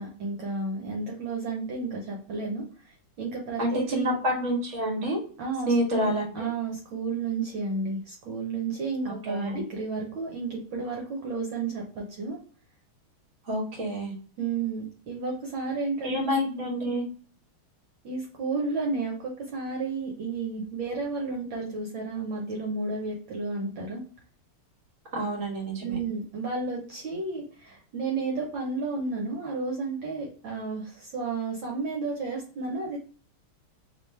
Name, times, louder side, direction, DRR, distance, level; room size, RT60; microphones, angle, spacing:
voice 1, 0.0-2.7 3.2-4.1 5.4-12.4 14.4-16.1 18.0-24.0 25.8-33.0, right 3 dB, 70° right, -1 dB, 1.5 m, -32 dB
voice 2, 3.6-5.2 5.7-6.5 9.0-9.6 13.4-14.1 16.0-17.0 25.1-26.0, equal, 40° right, -1 dB, 1.6 m, -28 dB
3.5 x 3.0 x 3.1 m, 0.42 s
omnidirectional pair, 2.4 m